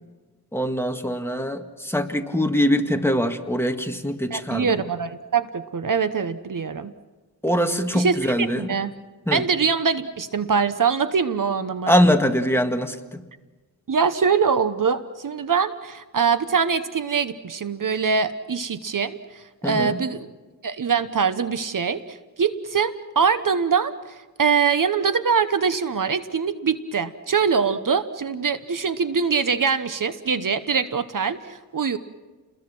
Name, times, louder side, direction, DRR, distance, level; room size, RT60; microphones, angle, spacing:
voice 1, 0.5-4.8 7.4-8.7 9.3-9.4 11.9-13.2 19.6-20.0, equal, 5° left, 5 dB, 1.7 m, -23 dB
voice 2, 4.3-6.9 7.9-8.9 9.3-11.9 13.9-20.3 20.6-32.0, right 6 dB, 55° right, 12 dB, 1.0 m, -23 dB
30.0 x 21.5 x 6.1 m, 1.3 s
wide cardioid pair, 80°, 39 cm